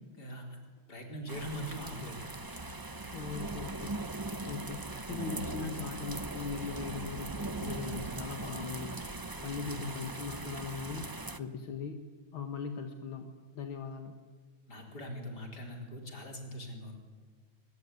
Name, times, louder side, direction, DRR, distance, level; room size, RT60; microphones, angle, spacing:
voice 1, 0.2-0.6 0.9-2.5 9.5-10.0 14.7-17.0, equal, 50° left, 2 dB, 4.8 m, -42 dB
sound 1, 1.3-11.4, right 2 dB, 30° right, 0.3 m, -40 dB
voice 2, 3.1-4.0 4.5-9.0 9.4-11.1 11.4-12.0 12.3-14.2, left 5 dB, 80° left, 6 dB, 2.3 m, -40 dB
24.0 x 21.5 x 9.5 m, 1.5 s
omnidirectional pair, 2.2 m